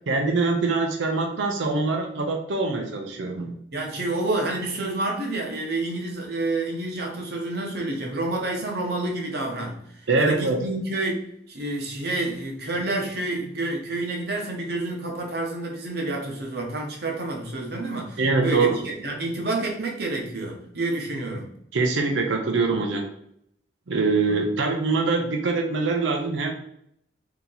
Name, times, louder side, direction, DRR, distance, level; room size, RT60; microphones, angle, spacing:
voice 1, 0.1-3.5 10.1-10.6 18.2-18.8 21.7-23.0 23.9-26.5, right 3 dB, 90° right, 2 dB, 0.6 m, -23 dB
voice 2, 3.7-9.8 10.2-21.5, right 2 dB, 60° right, 0 dB, 0.9 m, -29 dB
2.8 x 2.8 x 3.9 m, 0.71 s
head